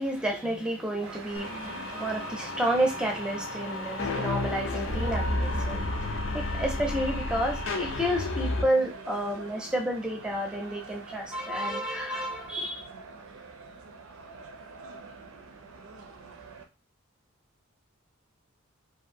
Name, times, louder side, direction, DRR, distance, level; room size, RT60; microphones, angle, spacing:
voice 1, 0.0-12.8, right 1 dB, 5° right, 0.5 m, -30 dB
sound 1, 1.0-16.6, right 4 dB, 80° right, 0.5 m, -45 dB
sound 2, 1.4-8.6, left 2 dB, 65° left, 0.5 m, -32 dB
2.7 x 2.5 x 2.6 m
head